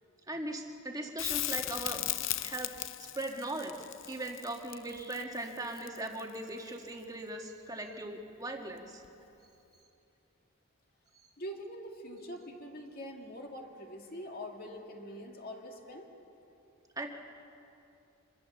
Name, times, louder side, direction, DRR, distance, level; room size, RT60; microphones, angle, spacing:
voice 1, 0.3-3.8 4.1-9.2 17.0-17.1, right 1 dB, 15° right, 2 dB, 1.7 m, -39 dB
Crackle, 1.2-6.3 9.0-9.1, left 15 dB, 60° left, 0.5 m, -37 dB
voice 2, 11.4-16.1, equal, 45° left, 2 dB, 2.3 m, -44 dB
24.0 x 22.5 x 7.2 m, 2.9 s
head